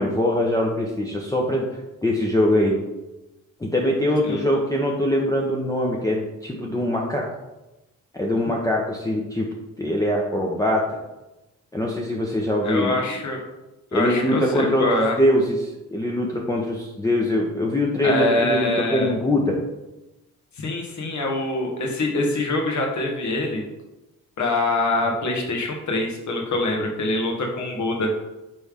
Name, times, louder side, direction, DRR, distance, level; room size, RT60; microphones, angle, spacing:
voice 1, 0.0-1.7 2.0-2.8 3.6-7.3 8.1-9.5 9.8-10.9 11.7-13.0 13.9-14.9 15.2-19.6, left 1 dB, 10° left, -2 dB, 0.7 m, -22 dB
voice 2, 12.6-13.4 13.9-15.2 18.0-19.1 20.6-23.6 24.4-28.1, left 2 dB, 50° left, 1 dB, 1.2 m, -24 dB
4.3 x 3.5 x 3.5 m, 1.0 s
supercardioid pair, 55°, 36 cm